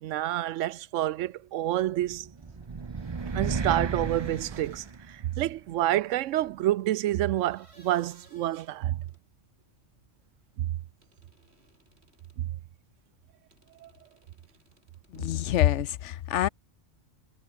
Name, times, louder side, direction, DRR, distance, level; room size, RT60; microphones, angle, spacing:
voice 1, 0.0-2.3 3.3-9.0 10.6-10.7 12.4-12.5 13.8-13.9 15.1-15.3, right 14 dB, 85° right, 0.9 m, -28 dB
sound 1, 2.1-5.5, right 5 dB, 30° right, 0.6 m, -33 dB
sound 2, 2.4-5.4 7.3-9.3 11.0-12.4 13.5-15.5, right 2 dB, 60° right, 6.2 m, -61 dB
voice 2, 15.1-16.5, left 12 dB, 75° left, 1.0 m, -26 dB
omnidirectional pair, 1.3 m